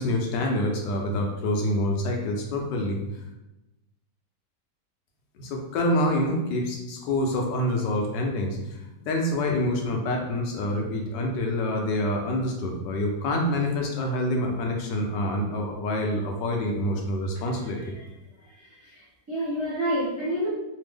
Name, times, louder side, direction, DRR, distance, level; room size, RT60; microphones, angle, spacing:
voice 1, 0.0-3.0 5.4-8.5 9.0-17.9, left 1 dB, 80° left, 1 dB, 1.2 m, -26 dB
voice 2, 18.6-20.5, equal, 25° right, -8 dB, 0.3 m, -29 dB
3.3 x 2.1 x 3.4 m, 0.95 s
omnidirectional pair, 1.9 m